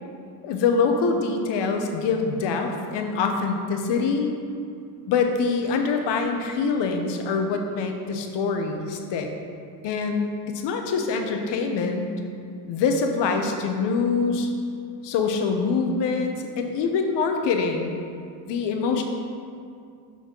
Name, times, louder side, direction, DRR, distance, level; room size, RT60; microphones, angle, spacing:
voice 1, 0.4-4.3 5.1-9.3 9.8-12.1 12.7-14.5 15.0-17.9 18.5-19.0, left 4 dB, 70° left, 4 dB, 1.0 m, -24 dB
5.8 x 5.8 x 4.5 m, 2.4 s
supercardioid pair, 85°, 44 cm